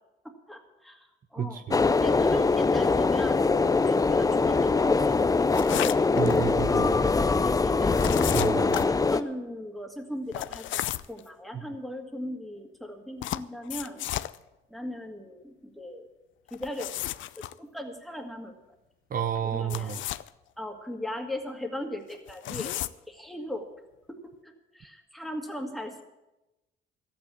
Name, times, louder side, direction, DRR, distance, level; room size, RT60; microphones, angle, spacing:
voice 1, 0.5-1.6 1.9-3.5 3.9-8.3 8.9-14.1 14.7-16.1 16.5-16.9 17.4-18.5 19.4-20.1 20.6-22.7 23.1-23.7 24.2-26.0, left 1 dB, ahead, 3 dB, 2.1 m, -38 dB
voice 2, 1.4-1.8 6.1-7.0 8.3-8.7 19.1-20.0, right 8 dB, 45° right, 9 dB, 0.7 m, -30 dB
sound 1, 1.7-9.2, left 4 dB, 20° left, 0.5 m, -23 dB
sound 2, 5.5-6.4 7.9-8.9 10.3-11.2 13.2-14.4 16.5-17.5 19.6-20.3 22.1-22.9, left 14 dB, 75° left, 0.5 m, -33 dB
13.0 x 8.7 x 8.4 m, 0.99 s
cardioid pair, 90°, 20 cm